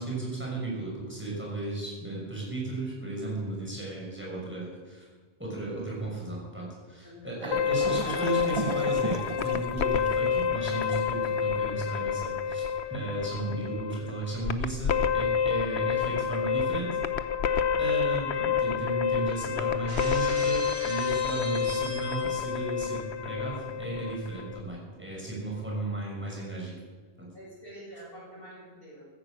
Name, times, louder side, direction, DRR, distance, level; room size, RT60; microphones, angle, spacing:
voice 1, 0.0-5.0 5.4-17.0 17.8-26.8 27.2-27.3, right 2 dB, 10° right, -3 dB, 5.8 m, -35 dB
voice 2, 7.0-7.5 27.3-29.1, equal, 60° left, -5 dB, 7.1 m, -46 dB
sound 1, 7.4-12.6, right 4 dB, 35° right, 0.6 m, -38 dB
sound 2, 7.5-24.6, left 7 dB, 80° left, 1.1 m, -29 dB
Shatter, 19.9-22.6, right 2 dB, 65° right, 2.0 m, -41 dB
16.0 x 14.5 x 6.3 m, 1.5 s
omnidirectional pair, 1.1 m